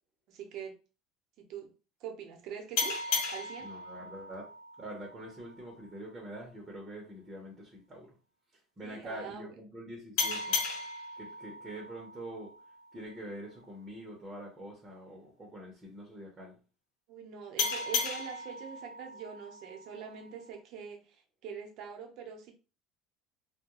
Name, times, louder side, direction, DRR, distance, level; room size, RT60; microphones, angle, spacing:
voice 1, 0.3-0.8 1.4-1.7 2.0-3.0 3.3-3.7 8.8-9.5 17.1-22.5, right 7 dB, 60° right, 0.7 m, -44 dB
sound 1, 2.8-6.0 10.2-13.4 17.6-20.5, left 4 dB, 85° left, 0.8 m, -36 dB
voice 2, 3.6-4.5 4.8-8.1 8.8-10.6 11.2-12.5 12.9-16.6, right 1 dB, 20° right, 0.8 m, -45 dB
2.3 x 2.1 x 2.9 m
supercardioid pair, 120°, 0 cm